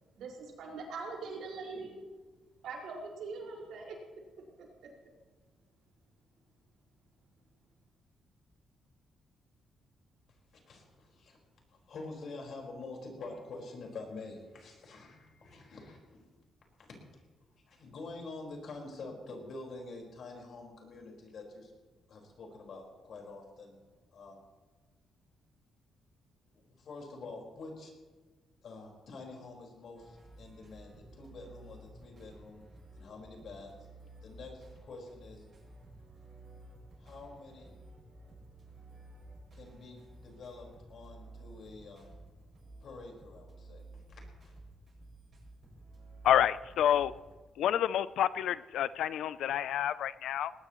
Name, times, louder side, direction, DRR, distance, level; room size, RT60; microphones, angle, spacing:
voice 1, 0.1-2.1 2.6-4.0 4.6-4.7, right 4 dB, 85° right, -1 dB, 5.0 m, -42 dB
voice 2, 10.6-11.4 11.7-16.2 16.8-17.2 17.7-21.7 22.1-23.8 24.1-24.4 26.5-27.9 28.6-32.6 32.9-33.7 34.2-35.5 37.0-37.9 39.5-42.1 42.8-44.5, left 3 dB, 55° left, 0 dB, 4.8 m, -47 dB
sound 1, 29.9-47.4, right 2 dB, 35° right, 6.7 m, -53 dB
voice 3, 46.2-47.1 47.6-50.5, left 10 dB, 80° left, 16 dB, 0.4 m, -28 dB
20.0 x 18.5 x 3.1 m, 1.3 s
cardioid pair, 145°, 0 cm